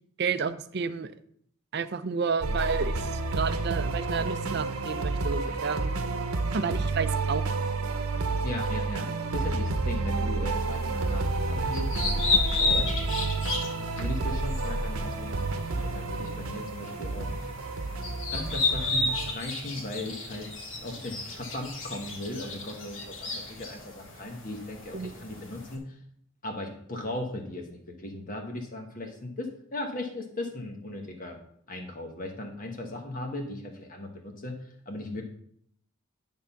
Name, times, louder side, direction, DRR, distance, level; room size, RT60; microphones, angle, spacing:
voice 1, 0.2-1.1 1.7-5.9 6.5-7.4 24.9-25.1, right 5 dB, 50° right, 12 dB, 0.4 m, -31 dB
sound 1, 2.4-19.3, right 3 dB, 80° right, 0.8 m, -30 dB
voice 2, 8.4-12.9 14.0-15.5 15.8-17.5 18.3-20.5 20.8-26.0 26.4-31.4 31.7-34.6 34.8-35.2, left 1 dB, 40° left, 3 dB, 1.3 m, -37 dB
sound 2, 10.5-25.7, left 3 dB, 60° left, 1.6 m, -33 dB
10.5 x 3.7 x 5.7 m, 0.67 s
head